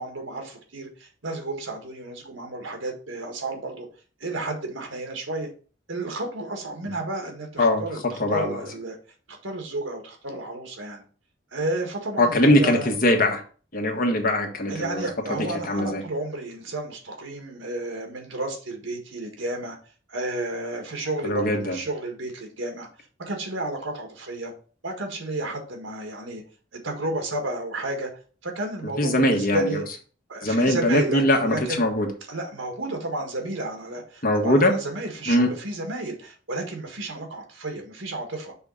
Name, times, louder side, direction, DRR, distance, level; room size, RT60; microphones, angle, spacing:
voice 1, 0.0-3.9 4.2-5.5 5.9-9.0 9.4-11.0 11.5-12.9 14.7-19.8 20.1-22.9 23.2-24.5 24.8-26.4 26.7-28.1 28.4-29.8 30.3-31.8 32.3-38.5, right 2 dB, 85° right, 3 dB, 1.6 m, -32 dB
voice 2, 8.2-8.6 12.2-13.4 13.7-15.1 15.7-16.0 21.2-21.8 29.0-29.8 30.4-32.1 34.2-34.7 35.3-35.5, left 1 dB, 50° left, 3 dB, 1.3 m, -21 dB
5.7 x 3.7 x 5.4 m, 0.39 s
head